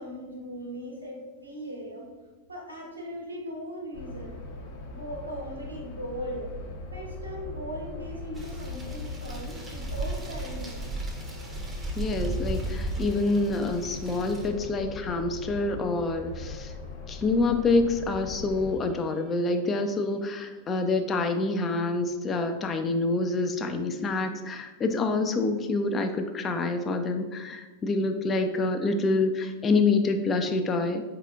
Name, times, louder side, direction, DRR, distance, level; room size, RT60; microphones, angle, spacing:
voice 1, 0.0-2.1 2.5-4.3 4.9-6.5 6.9-10.8, equal, 85° right, -3 dB, 1.1 m, -38 dB
sound 1, 3.9-18.7, left 3 dB, 45° left, 0.7 m, -40 dB
sound 2, 8.3-14.5, right 2 dB, 15° right, 0.7 m, -35 dB
voice 2, 12.0-16.7 17.1-31.0, left 3 dB, 25° left, 6 dB, 0.4 m, -27 dB
4.0 x 2.8 x 3.5 m, 1.2 s
figure-of-eight pair, 90°, 0 cm